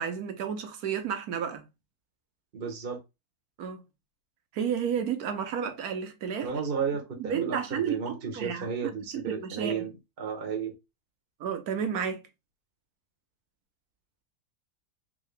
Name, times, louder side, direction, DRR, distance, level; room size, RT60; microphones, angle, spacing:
voice 1, 0.0-1.6 3.6-3.8 4.5-6.5 7.2-8.7 9.1-9.8 11.4-12.2, right 7 dB, 75° right, 1.3 m, -31 dB
voice 2, 2.5-3.0 6.4-10.7, right 6 dB, 40° right, 1.1 m, -33 dB
3.7 x 3.0 x 3.2 m
omnidirectional pair, 1.6 m